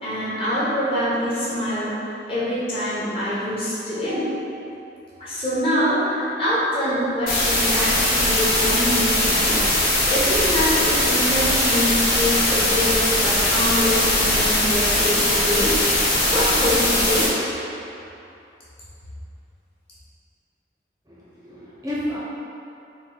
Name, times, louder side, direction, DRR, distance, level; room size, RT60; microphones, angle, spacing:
voice 1, 0.0-1.9 2.3-4.3 5.2-17.3, equal, 30° left, -10 dB, 0.9 m, -25 dB
sound 1, 7.3-17.3, left 1 dB, 55° left, 1.3 m, -20 dB
voice 2, 21.1-22.2, left 1 dB, 20° right, -9 dB, 0.6 m, -31 dB
3.8 x 2.6 x 3.8 m, 2.8 s
head